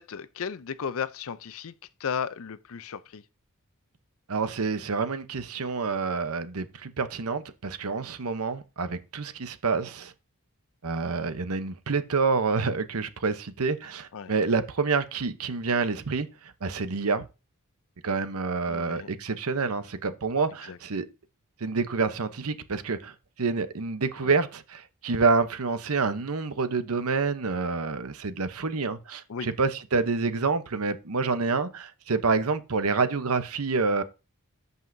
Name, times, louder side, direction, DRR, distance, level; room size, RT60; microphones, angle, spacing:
voice 1, 0.0-1.7 2.0-3.2 14.1-14.3 18.7-19.1 20.6-20.8 24.2-24.4 29.3-29.5, left 6 dB, 65° left, 0.5 m, -34 dB
voice 2, 4.3-10.1 10.8-16.3 16.6-17.3 18.0-21.0 21.6-23.1 23.4-34.0, right 4 dB, 70° right, 0.9 m, -27 dB
13.5 x 5.5 x 2.7 m
head